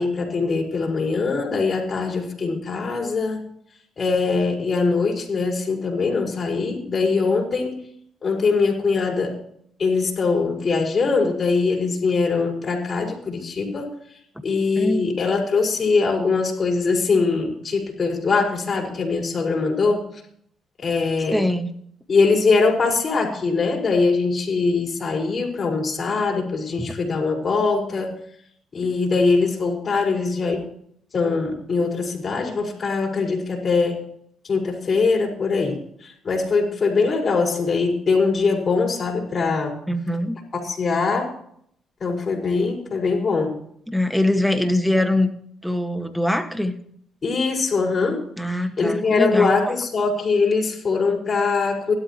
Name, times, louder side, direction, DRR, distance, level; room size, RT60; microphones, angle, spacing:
voice 1, 0.0-3.4 4.0-7.8 8.2-9.4 9.8-13.9 14.4-20.0 20.8-21.4 22.1-28.1 28.7-30.6 31.1-34.0 34.4-39.8 40.5-41.3 42.0-43.6 47.2-48.2 48.8-51.9, left 4 dB, 40° left, 0 dB, 5.3 m, -22 dB
voice 2, 21.3-21.7 39.9-40.3 43.9-45.3 45.6-46.7 48.4-49.6, left 1 dB, ahead, 7 dB, 1.6 m, -22 dB
17.0 x 12.5 x 3.0 m, 0.65 s
cardioid pair, 90°, 0 cm